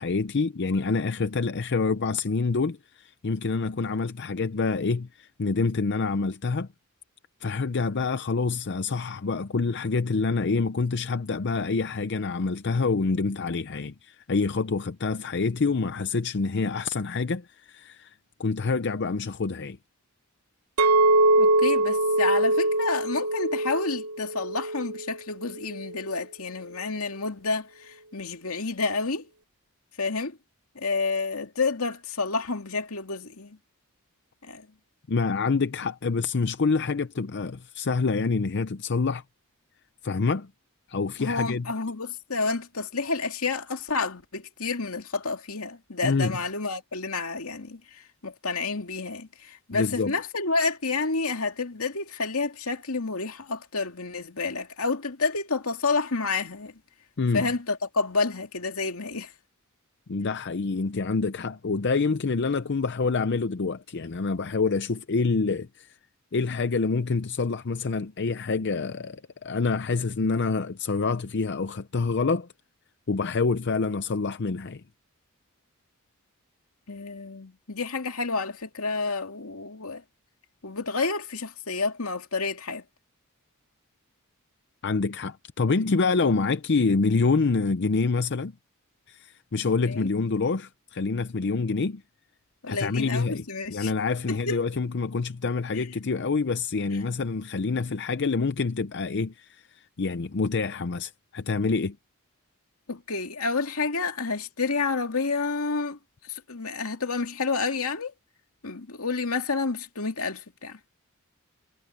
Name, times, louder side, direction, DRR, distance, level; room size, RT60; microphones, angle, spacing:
voice 1, 0.0-6.7 7.4-18.1 18.4-19.8 35.1-39.2 40.0-40.5 40.9-41.7 46.0-46.3 49.7-50.1 57.2-57.5 60.1-66.0 66.3-72.5 73.1-74.8 84.8-88.5 89.1-92.0 92.7-93.4 93.7-102.0, left 4 dB, 55° left, 0.6 m, -27 dB
Chink clink, 20.8-25.1 25.6-26.0, right 2 dB, 90° right, 0.9 m, -23 dB
voice 2, 21.4-29.3 30.0-30.4 30.8-33.6 34.4-34.7 41.2-56.7 57.3-59.3 76.9-80.0 80.6-82.8 89.9-90.1 92.6-93.9 94.3-94.6 95.7-95.8 96.9-97.0 102.9-106.0 106.2-108.1 108.6-110.8, left 4 dB, 75° left, 2.4 m, -29 dB
head